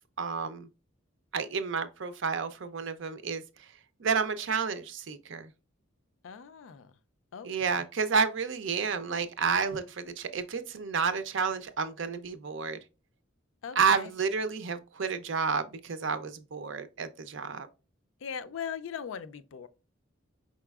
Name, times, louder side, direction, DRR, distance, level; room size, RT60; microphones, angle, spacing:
voice 1, 0.2-0.7 1.3-3.4 4.0-5.5 7.4-12.8 13.8-17.7, right 5 dB, 65° right, 0.5 m, -30 dB
voice 2, 6.2-6.9 7.3-7.8 13.6-14.1 18.2-19.7, left 7 dB, 75° left, 0.4 m, -40 dB
4.7 x 4.1 x 2.3 m
head